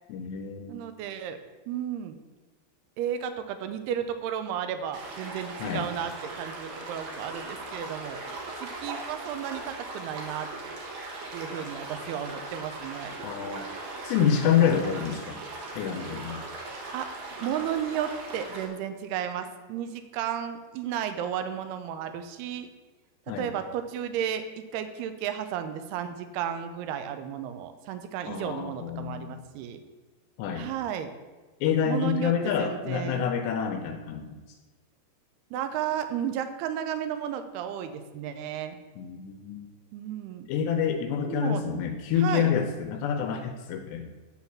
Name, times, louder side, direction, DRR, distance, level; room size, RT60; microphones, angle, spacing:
voice 1, 0.1-0.8 5.6-5.9 13.2-13.7 14.0-15.4 15.7-16.4 23.3-23.5 28.3-29.4 30.4-30.7 31.6-34.3 39.0-39.7 40.5-44.1, left 8 dB, 80° left, 5 dB, 2.8 m, -27 dB
voice 2, 0.7-1.4 1.7-2.2 3.0-8.2 8.6-10.5 11.3-13.2 16.9-22.7 23.4-24.4 24.7-29.8 30.6-31.1 31.9-33.3 35.5-38.8 39.9-40.5 41.2-41.6 42.2-42.5, right 9 dB, 80° right, 9 dB, 2.5 m, -33 dB
sound 1, 4.9-18.7, right 2 dB, 55° right, 2.2 m, -39 dB
9.7 x 4.2 x 7.2 m, 1.3 s
omnidirectional pair, 5.0 m